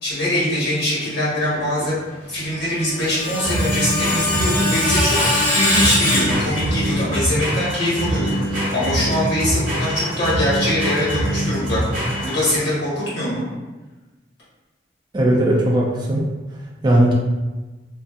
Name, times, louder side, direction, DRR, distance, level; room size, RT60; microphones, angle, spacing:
voice 1, 0.0-2.0 2.3-11.8 12.2-13.5, left 1 dB, 60° left, -8 dB, 1.4 m, -23 dB
sound 1, 1.3-12.8, right 1 dB, 50° right, 0.8 m, -24 dB
Screech, 2.7-7.0, left 1 dB, 45° left, 0.6 m, -22 dB
voice 2, 15.1-16.3 16.8-17.1, right 1 dB, 25° right, -3 dB, 0.3 m, -17 dB
2.6 x 2.4 x 2.4 m, 1.2 s
head